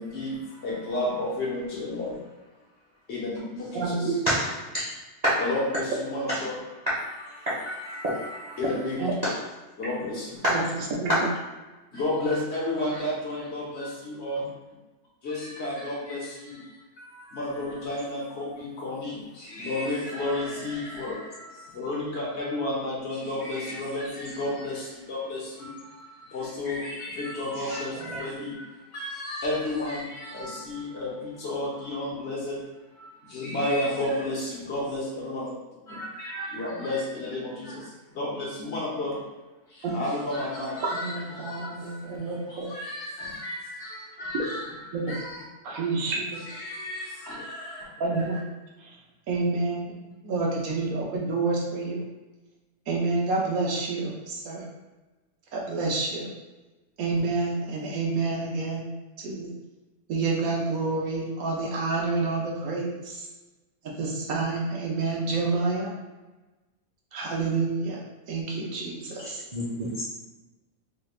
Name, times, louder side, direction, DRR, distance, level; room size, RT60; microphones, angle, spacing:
voice 1, 0.0-2.3 3.1-4.1 5.4-6.6 7.2-9.1 9.8-10.4 11.9-14.5 15.2-32.6 33.0-35.5 35.9-39.2 39.7-44.7 45.0-45.5 46.5-47.8 48.1-48.2, left 1 dB, 55° left, -5 dB, 1.1 m, -32 dB
voice 2, 3.7-4.2 9.0-9.1 10.5-11.3 39.8-39.9 40.9-42.7 44.9-45.0 45.6-46.4 48.0-48.4 48.8-49.0 49.3-49.9 50.2-52.0 52.9-54.7 55.5-56.3 57.0-58.9 59.2-59.5 60.1-63.3 63.8-65.9 67.1-69.4, right 3 dB, 80° right, -2 dB, 1.2 m, -28 dB
voice 3, 69.5-70.0, equal, 45° right, -9 dB, 0.5 m, -25 dB
3.3 x 3.1 x 2.4 m, 1.2 s
omnidirectional pair, 1.5 m